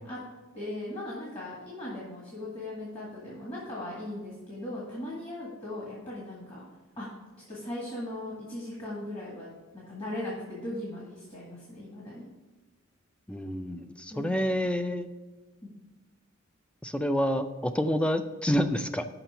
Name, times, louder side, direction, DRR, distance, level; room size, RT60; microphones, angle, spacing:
voice 1, 0.5-6.7 7.0-7.1 7.5-12.3 14.1-14.5 15.6-15.8, left 1 dB, 25° left, -6 dB, 1.8 m, -38 dB
voice 2, 13.3-15.1 16.8-19.0, equal, 5° left, 9 dB, 0.3 m, -28 dB
5.9 x 5.4 x 6.7 m, 1.2 s
head